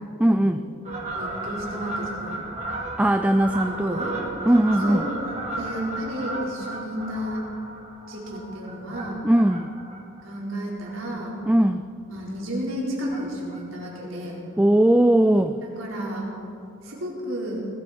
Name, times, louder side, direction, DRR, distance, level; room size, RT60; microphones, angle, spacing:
voice 1, 0.2-0.7 3.0-4.0 4.5-5.0 9.2-9.7 11.5-11.8 14.6-15.6, right 1 dB, 5° right, 8 dB, 0.3 m, -19 dB
Fowl, 0.8-11.6 12.1-12.3 13.0-13.6 13.9-14.0 14.2-14.3 14.6-14.7 15.1-15.2 16.2-16.3 16.9-17.0, right 2 dB, 35° right, 2.4 m, -35 dB
voice 2, 1.1-2.5 3.7-4.1 4.8-5.1 5.6-7.4 8.1-9.2 10.2-11.4 12.1-14.4 15.8-16.3 16.8-17.7, equal, 80° right, -4 dB, 4.2 m, -32 dB
20.5 x 13.5 x 4.3 m, 2.5 s
head